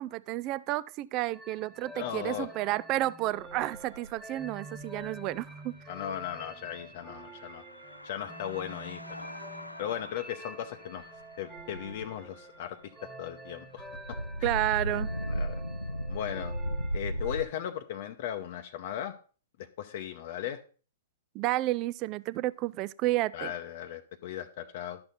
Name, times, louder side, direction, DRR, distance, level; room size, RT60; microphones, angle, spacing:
voice 1, 0.0-5.7 14.4-15.1 21.3-23.5, right 17 dB, 30° right, 0.3 m, -31 dB
sound 1, 1.3-17.7, right 1 dB, 10° right, 0.9 m, -48 dB
voice 2, 1.9-2.5 5.9-7.6 8.0-9.3 9.8-11.1 11.4-12.9 13.2-13.9 14.4-14.7 15.3-15.6 16.1-16.5 16.9-19.1 19.6-20.6 23.3-25.0, left 10 dB, 45° left, 0.7 m, -37 dB
sound 2, 3.3-5.4 6.2-12.2 13.8-17.4, equal, 90° left, 0.3 m, -37 dB
11.5 x 6.7 x 3.9 m
figure-of-eight pair, 110°, 0 cm